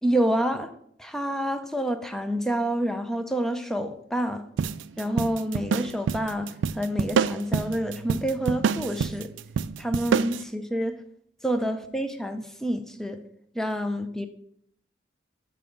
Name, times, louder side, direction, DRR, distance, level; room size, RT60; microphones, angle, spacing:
voice 1, 0.0-0.7 1.0-4.5 5.0-9.3 9.8-11.0 11.4-13.2 13.5-14.3, right 1 dB, 5° left, 0.6 m, -28 dB
sound 1, 4.6-10.4, right 6 dB, 80° right, 0.3 m, -27 dB
5.9 x 5.5 x 6.4 m
head